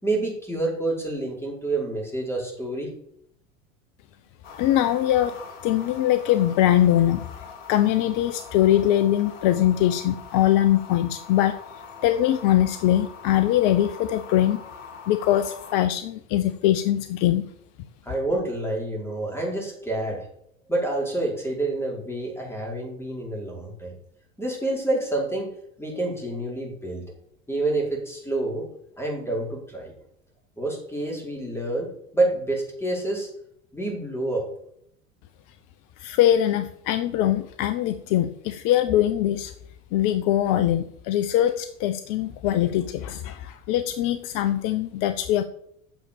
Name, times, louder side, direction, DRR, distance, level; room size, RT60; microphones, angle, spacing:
voice 1, 0.0-2.9 18.0-20.3 20.7-23.9 24.4-25.5 25.8-27.0 27.5-28.6 29.0-29.9 30.6-31.9 32.1-33.3 33.7-34.4, right 2 dB, 5° left, -2 dB, 5.1 m, -28 dB
sound 1, 4.4-15.7, left 5 dB, 70° left, 2.5 m, -43 dB
voice 2, 4.6-5.4 5.6-7.2 7.7-11.6 12.0-14.6 15.1-17.4 36.0-39.5 39.9-45.4, left 12 dB, 50° left, 11 dB, 0.8 m, -22 dB
9.2 x 6.7 x 6.8 m, 0.70 s
hypercardioid pair, 80°, 40 cm